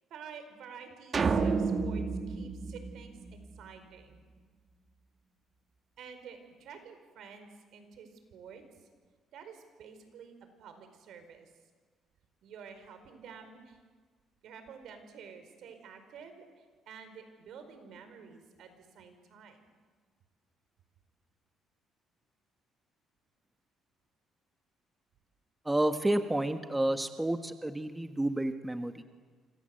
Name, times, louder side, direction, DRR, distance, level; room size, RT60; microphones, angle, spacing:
voice 1, 0.1-4.2 6.0-8.9 9.3-10.3 10.6-11.5 12.4-13.8 14.4-19.7, right 6 dB, 75° right, 8 dB, 4.8 m, -50 dB
sound 1, 1.1-3.6, right 4 dB, 40° right, 2.0 m, -30 dB
voice 2, 25.6-29.0, right 1 dB, 10° right, 7 dB, 1.4 m, -30 dB
28.0 x 26.0 x 7.9 m, 1.5 s
cardioid pair, 100°, 0 cm